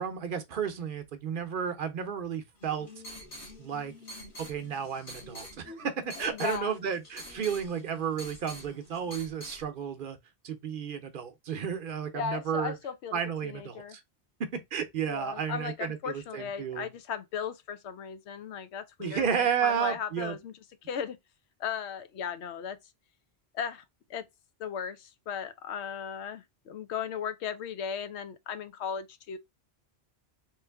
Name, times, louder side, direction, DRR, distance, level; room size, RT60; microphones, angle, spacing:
voice 1, 0.0-2.9 3.6-3.9 4.5-10.2 10.4-12.7 13.1-14.0 14.7-16.9 19.0-20.3, right 7 dB, 60° right, 0.7 m, -32 dB
sound 1, 2.6-9.6, equal, 55° left, 1.5 m, -46 dB
voice 2, 6.2-6.7 12.1-14.0 15.1-20.5 20.8-21.2 21.6-22.8 23.5-23.8 24.1-24.2 24.6-29.4, left 7 dB, 85° left, 0.9 m, -36 dB
3.1 x 3.1 x 3.3 m
omnidirectional pair, 1.1 m